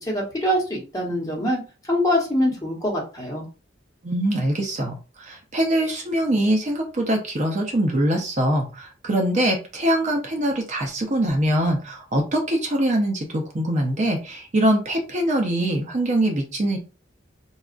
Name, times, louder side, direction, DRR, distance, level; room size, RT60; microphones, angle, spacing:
voice 1, 0.0-1.6 1.8-3.4, equal, 20° left, -2 dB, 1.0 m, -24 dB
voice 2, 4.0-16.8, right 1 dB, 40° right, 2 dB, 0.6 m, -23 dB
4.0 x 2.3 x 2.4 m, 0.33 s
head